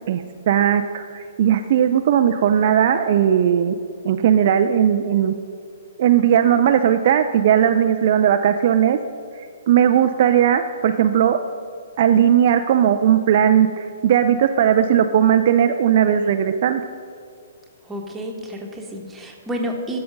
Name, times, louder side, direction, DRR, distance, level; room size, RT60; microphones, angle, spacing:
voice 1, 0.1-3.8 4.0-5.3 6.0-9.0 9.7-11.4 12.0-16.8, right 9 dB, 45° right, 7 dB, 0.4 m, -17 dB
voice 2, 17.9-20.0, equal, 10° right, 1 dB, 1.3 m, -30 dB
12.0 x 6.7 x 5.2 m, 2.4 s
figure-of-eight pair, 120°, 0 cm